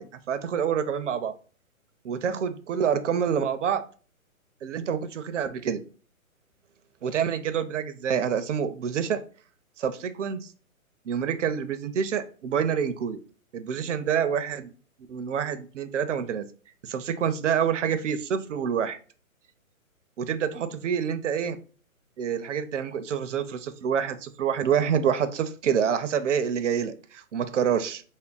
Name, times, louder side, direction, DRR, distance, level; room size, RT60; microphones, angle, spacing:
voice 1, 0.0-1.3 2.0-3.8 4.6-5.8 7.0-9.2 9.8-10.5 11.1-13.2 13.5-14.7 15.1-16.4 16.8-19.0 20.2-21.6 22.2-28.0, right 7 dB, 60° right, 10 dB, 0.5 m, -27 dB
3.4 x 2.1 x 3.8 m, 0.39 s
hypercardioid pair, 165°, 42 cm